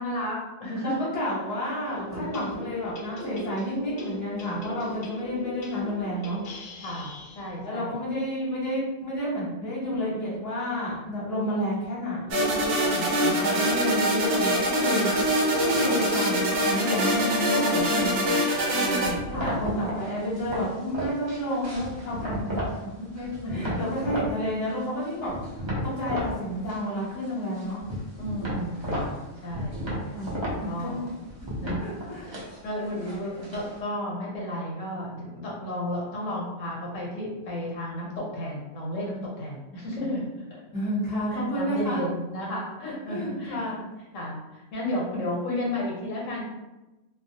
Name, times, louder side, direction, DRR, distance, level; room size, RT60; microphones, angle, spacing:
voice 1, 0.0-1.0 2.1-2.3 6.8-7.1 7.3-7.9 12.8-13.6 18.7-19.6 23.4-23.8 28.1-29.9 30.6-31.0 31.6-32.1 32.6-40.3 41.3-43.6 44.1-44.4 44.7-46.4, left 1 dB, 75° left, -3 dB, 1.0 m, -33 dB
voice 2, 0.8-6.4 7.6-12.4 13.4-15.1 15.4-18.3 19.3-22.5 23.1-25.3 25.8-27.8 30.1-30.3 30.6-31.0 31.8-32.4 33.0-33.6 40.7-42.0 43.1-43.9, equal, 15° left, -8 dB, 0.8 m, -30 dB
sound 1, 1.8-7.6, left 1 dB, 60° left, 0.7 m, -40 dB
sound 2, 12.3-19.1, equal, 65° right, 0.9 m, -24 dB
sound 3, 19.0-22.8 23.2-24.3 24.7-26.3 26.6-27.3 27.6-33.8, equal, 40° right, 0.4 m, -33 dB
2.3 x 2.0 x 2.7 m, 1.0 s
omnidirectional pair, 1.3 m